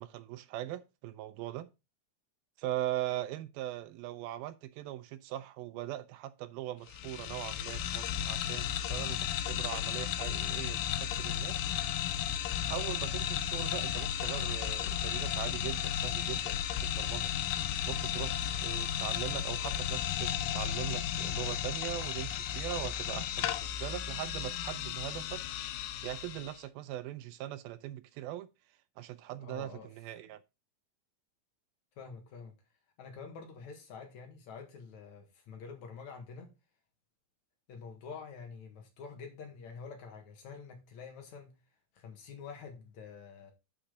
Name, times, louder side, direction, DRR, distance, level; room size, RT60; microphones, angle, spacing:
voice 1, 0.0-1.7 2.6-11.6 12.7-17.3 17.9-25.4 26.0-28.5 29.0-30.4, right 13 dB, 85° right, 2.5 m, -40 dB
sound 1, 6.9-26.6, left 10 dB, 80° left, 1.9 m, -34 dB
voice 2, 29.3-29.9 32.0-32.5 33.0-36.5 37.7-41.5 42.0-43.5, left 5 dB, 55° left, 2.7 m, -47 dB
10.0 x 5.7 x 3.9 m
omnidirectional pair, 4.3 m